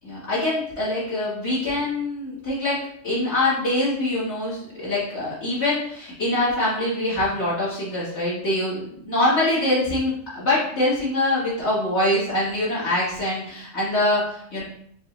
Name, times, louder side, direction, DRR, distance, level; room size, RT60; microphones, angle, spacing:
voice 1, 0.0-2.8 3.0-14.6, left 1 dB, 50° left, -11 dB, 2.0 m, -24 dB
6.4 x 2.4 x 3.1 m, 0.67 s
omnidirectional pair, 1.5 m